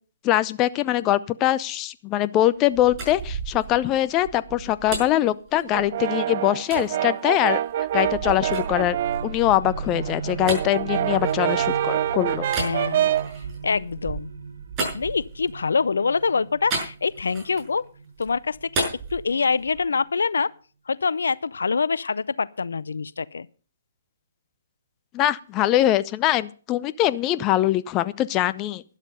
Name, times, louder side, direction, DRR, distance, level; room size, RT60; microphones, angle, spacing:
voice 1, 0.2-7.6 7.9-9.0 9.2-12.5 25.1-28.8, left 13 dB, 25° left, 0.6 m, -22 dB
sound 1, 2.6-6.1 6.7-6.9 7.5-11.9 12.5-15.7 16.7-17.8 18.1-19.9, right 3 dB, 25° right, 6.5 m, -34 dB
Brass instrument, 5.7-9.4 9.8-13.4, right 11 dB, 50° right, 0.6 m, -26 dB
sound 2, 8.4-19.7, right 4 dB, 75° right, 1.7 m, -36 dB
voice 2, 12.6-13.1 13.6-14.3 14.9-17.8 18.2-20.5 20.9-23.5, left 5 dB, 75° left, 0.5 m, -25 dB
12.5 x 11.5 x 5.4 m
hypercardioid pair, 135°, 0 cm